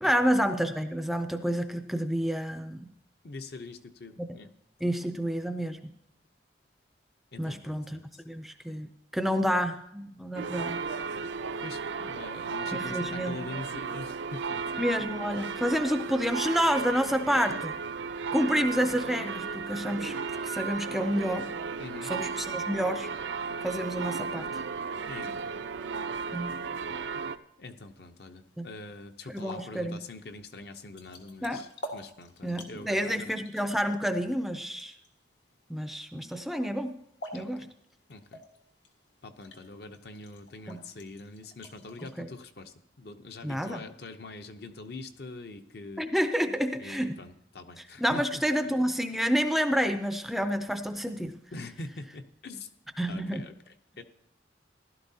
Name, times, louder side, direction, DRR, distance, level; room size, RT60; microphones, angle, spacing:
voice 1, 0.0-2.9 4.2-4.4 4.8-5.8 7.4-8.0 8.3-8.9 9.1-10.8 12.7-13.4 14.8-17.7 18.3-20.2 20.4-21.5 22.1-23.1 23.6-24.5 26.3-26.6 28.6-28.7 29.3-30.0 31.4-31.6 32.4-34.9 35.7-37.0 37.3-37.6 40.7-40.8 42.2-42.3 43.4-43.8 46.0-47.2 48.0-51.3 53.0-53.5, equal, ahead, 8 dB, 0.4 m, -29 dB
voice 2, 3.2-4.5 7.3-8.2 11.6-14.7 21.8-22.1 25.0-25.6 27.6-33.3 37.3-37.7 38.1-38.4 39.2-46.1 46.8-48.9 51.5-52.7 53.1-53.5 54.0-54.1, left 2 dB, 60° left, 7 dB, 0.7 m, -44 dB
sound 1, 10.4-27.4, right 5 dB, 85° right, 0.5 m, -35 dB
sound 2, 27.7-42.1, left 1 dB, 85° left, 1.6 m, -50 dB
15.5 x 12.0 x 2.8 m, 0.78 s
head